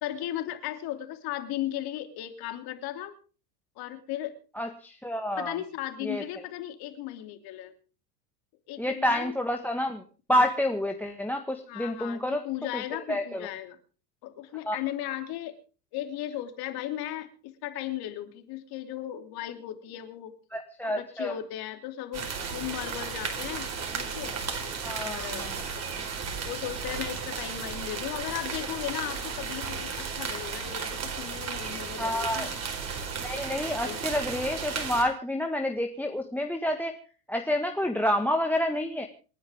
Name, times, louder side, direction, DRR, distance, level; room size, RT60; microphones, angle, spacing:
voice 1, 0.0-3.1 3.8-4.4 5.4-7.7 8.7-9.3 11.7-13.8 14.2-15.5 15.9-20.3 20.8-24.3 25.0-25.5 26.4-32.6 33.8-34.0, left 13 dB, 50° left, 6 dB, 3.1 m, -36 dB
voice 2, 4.5-5.6 6.0-6.2 8.8-10.0 10.3-12.4 12.7-13.5 14.6-14.7 20.5-21.3 24.8-25.6 32.0-32.5 33.2-36.9 37.3-39.1, left 1 dB, 5° left, 6 dB, 1.6 m, -29 dB
sound 1, 22.1-35.0, right 6 dB, 30° right, 4.7 m, -34 dB
28.0 x 10.0 x 3.6 m, 0.38 s
hypercardioid pair, 90°, 48 cm